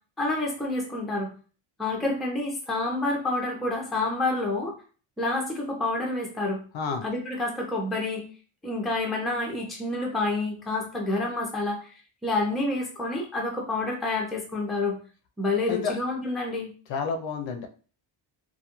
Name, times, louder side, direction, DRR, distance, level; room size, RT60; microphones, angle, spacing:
voice 1, 0.2-1.3 1.8-4.7 5.2-6.6 7.0-8.2 8.6-11.9 12.2-15.0 15.4-16.7, left 2 dB, ahead, -2 dB, 0.5 m, -28 dB
voice 2, 6.7-7.0 15.7-16.0 16.9-17.7, left 5 dB, 65° left, 6 dB, 0.5 m, -29 dB
2.2 x 2.2 x 2.9 m, 0.38 s
cardioid pair, 140°, 50 cm